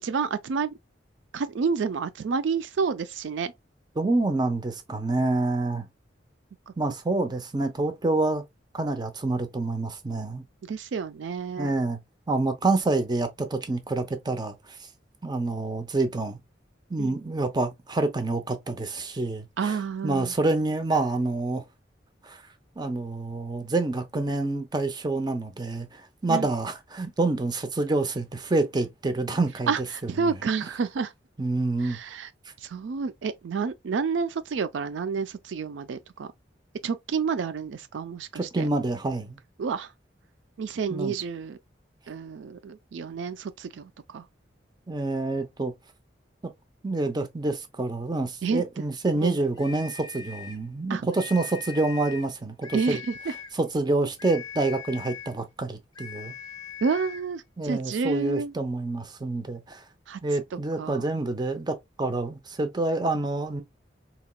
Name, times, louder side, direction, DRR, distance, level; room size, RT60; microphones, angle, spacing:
voice 1, 0.0-0.8 1.3-3.5 10.7-11.7 17.0-17.2 19.6-20.3 26.3-26.5 29.7-29.8 30.1-31.1 31.8-32.3 32.6-36.3 36.8-38.7 39.6-39.9 40.6-41.6 42.1-44.2 48.4-48.6 49.2-49.4 50.9-51.1 52.7-53.3 56.8-58.5 60.1-60.2 60.8-61.0, right 5 dB, 80° right, 0.4 m, -29 dB
voice 2, 4.0-5.9 6.8-8.4 8.7-10.4 11.6-12.0 12.3-14.8 15.2-16.4 16.9-19.8 20.0-21.6 22.2-22.4 22.8-29.7 30.2-30.3 31.4-32.0 38.3-39.4 40.9-41.1 44.9-45.7 46.8-53.0 53.5-56.3 57.6-59.8 60.2-63.6, right 2 dB, 25° right, 0.6 m, -27 dB
sound 1, 49.6-50.7 51.1-52.3 52.6-53.6 54.2-55.4 55.9-57.3, left 7 dB, 25° left, 0.5 m, -41 dB
4.2 x 2.9 x 2.2 m
head